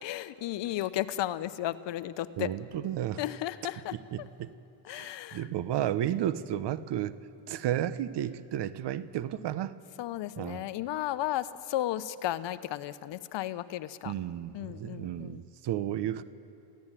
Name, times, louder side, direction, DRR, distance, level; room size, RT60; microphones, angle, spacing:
voice 1, 0.0-2.5 3.2-4.3 4.8-5.5 10.0-14.1 14.5-15.4, left 13 dB, 60° left, 14 dB, 1.1 m, -34 dB
voice 2, 2.4-3.2 4.1-4.5 4.9-7.1 7.5-9.7 10.4-10.6 14.0-16.2, right 11 dB, 55° right, 14 dB, 1.1 m, -32 dB
28.5 x 16.0 x 9.2 m, 2.7 s
supercardioid pair, 90°, 49 cm